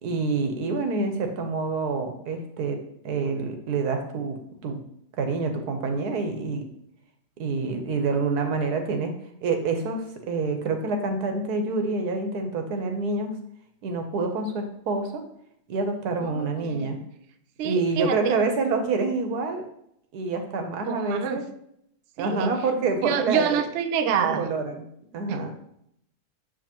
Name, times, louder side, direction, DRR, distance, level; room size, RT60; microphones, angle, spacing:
voice 1, 0.0-4.8 5.2-6.6 7.4-9.1 9.4-13.3 13.8-15.2 15.7-17.0 17.6-19.7 20.1-21.4 22.2-23.6 24.2-24.8 25.1-25.5, right 3 dB, 85° right, 5 dB, 1.4 m, -27 dB
voice 2, 16.2-17.0 17.6-18.4 20.9-21.4 22.2-22.5 23.0-24.5 25.3-25.5, right 7 dB, 65° right, 8 dB, 0.7 m, -27 dB
7.3 x 5.0 x 2.9 m, 0.73 s
omnidirectional pair, 1.7 m